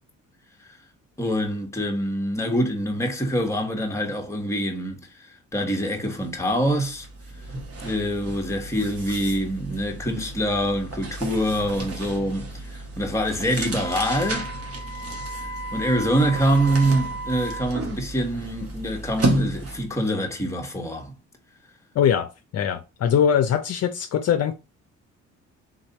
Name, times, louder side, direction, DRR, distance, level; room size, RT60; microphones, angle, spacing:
voice 1, 1.2-5.0 5.5-7.1 7.8-14.5 15.7-21.1, equal, 10° left, 1.2 m, -25 dB
sound 1, 6.0-6.2 6.5-20.0, right 2 dB, 50° right, 1.6 m, -32 dB
Wind instrument woodwind instrument, 13.7-17.7, right 2 dB, 80° right, 2.0 m, -35 dB
voice 2, 21.9-24.5, left 8 dB, 55° left, 0.6 m, -22 dB
3.8 x 3.2 x 4.0 m
cardioid pair, 90°, 30 cm